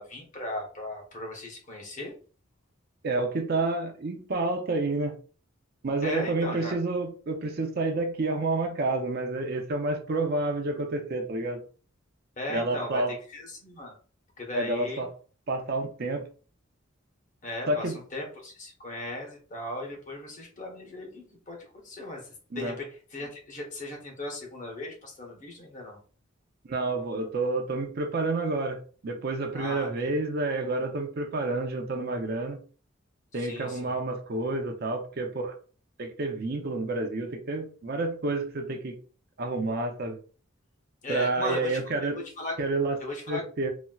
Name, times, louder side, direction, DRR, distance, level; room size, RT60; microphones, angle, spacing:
voice 1, 0.0-2.1 6.0-6.8 12.4-13.9 14.4-15.1 17.4-22.8 23.1-26.0 29.5-30.1 33.4-33.9 41.0-42.6 43.0-43.4, left 1 dB, 40° left, 0 dB, 0.9 m, -37 dB
voice 2, 3.0-5.2 5.8-11.6 12.5-13.1 14.5-15.1 15.5-16.2 17.7-18.0 22.5-22.8 26.7-32.6 33.3-35.5 36.0-39.0 39.4-40.2 41.1-42.2 42.6-43.0 43.3-43.7, right 2 dB, 50° right, 4 dB, 0.5 m, -29 dB
4.1 x 2.0 x 2.3 m, 0.39 s
head